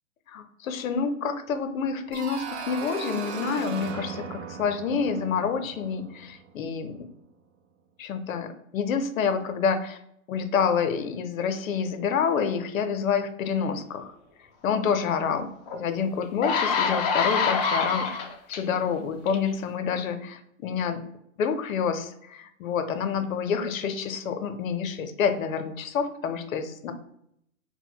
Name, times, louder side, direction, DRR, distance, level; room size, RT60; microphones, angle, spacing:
voice 1, 0.3-7.0 8.0-10.0 10.3-14.1 14.6-15.5 15.7-18.2 18.5-21.0 21.4-26.9, left 6 dB, 75° left, 8 dB, 0.6 m, -28 dB
sound 1, 2.1-6.8, right 6 dB, 55° right, 0.5 m, -38 dB
sound 2, 15.7-15.8 16.2-18.6 19.3-19.5, left 5 dB, 30° left, 0.5 m, -25 dB
4.2 x 2.1 x 2.2 m, 0.73 s
hypercardioid pair, 125°, 41 cm